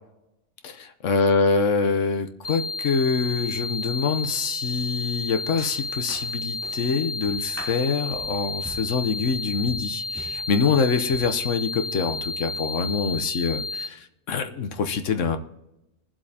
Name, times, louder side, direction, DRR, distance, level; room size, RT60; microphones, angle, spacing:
voice 1, 0.6-15.4, left 5 dB, 85° left, 8 dB, 1.3 m, -25 dB
sound 1, 2.4-13.9, left 3 dB, 35° left, 0.5 m, -32 dB
sound 2, 3.6-3.9 4.2-11.9, equal, 10° right, 2.9 m, -44 dB
21.0 x 7.7 x 2.8 m, 0.89 s
omnidirectional pair, 1.2 m